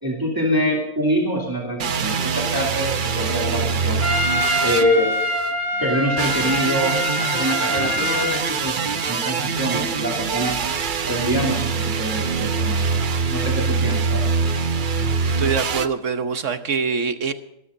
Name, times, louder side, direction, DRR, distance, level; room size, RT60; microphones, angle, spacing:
voice 1, 0.0-4.0 4.6-5.2 5.7-10.6 11.1-13.0 13.3-14.5, equal, 15° right, -2 dB, 2.9 m, -25 dB
sound 1, 1.8-5.5 6.2-15.9, right 5 dB, 45° right, 0.8 m, -24 dB
Trumpet, 4.0-8.4, equal, 85° right, 2.5 m, -24 dB
voice 2, 15.4-17.3, right 5 dB, 60° right, 9 dB, 1.2 m, -24 dB
26.0 x 12.5 x 2.7 m, 0.86 s
omnidirectional pair, 1.5 m